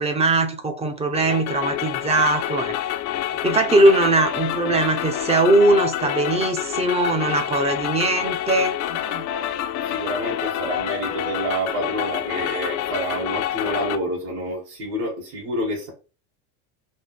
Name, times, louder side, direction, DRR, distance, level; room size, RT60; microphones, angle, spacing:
voice 1, 0.0-2.7 3.4-9.2, right 2 dB, 15° right, 0.6 m, -20 dB
sound 1, 1.1-14.0, left 12 dB, 40° left, 0.5 m, -27 dB
voice 2, 3.1-3.5 9.7-15.9, right 1 dB, 60° right, 2.1 m, -28 dB
4.1 x 2.6 x 3.3 m
supercardioid pair, 120°, 46 cm